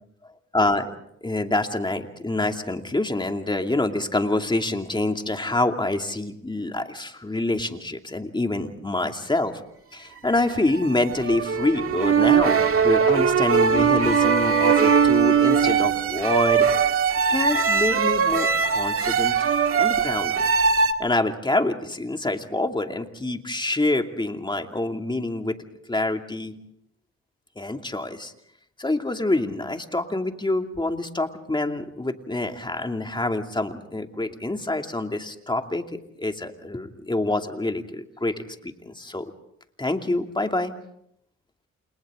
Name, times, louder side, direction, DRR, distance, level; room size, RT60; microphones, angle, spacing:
voice 1, 0.5-0.9 1.2-9.6 9.9-16.7 17.3-19.4 19.8-20.3 21.0-25.6 25.9-26.6 27.6-28.3 28.8-39.3 39.8-40.7, left 2 dB, 15° left, 5 dB, 2.6 m, -26 dB
sound 1, 10.4-20.9, right 6 dB, 50° right, 1.9 m, -20 dB
29.0 x 28.5 x 3.8 m, 0.73 s
supercardioid pair, 70°, 29 cm